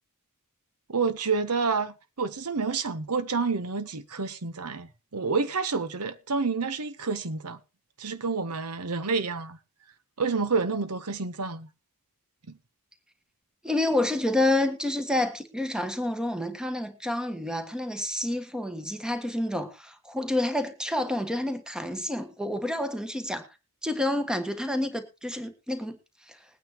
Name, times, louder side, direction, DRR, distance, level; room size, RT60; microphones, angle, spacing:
voice 1, 0.9-7.6 8.0-9.6 10.2-11.7, right 4 dB, 90° right, 1.0 m, -29 dB
voice 2, 13.6-23.5 23.8-26.0 26.3-26.4, left 1 dB, 5° right, 1.3 m, -29 dB
20.5 x 9.2 x 3.0 m
head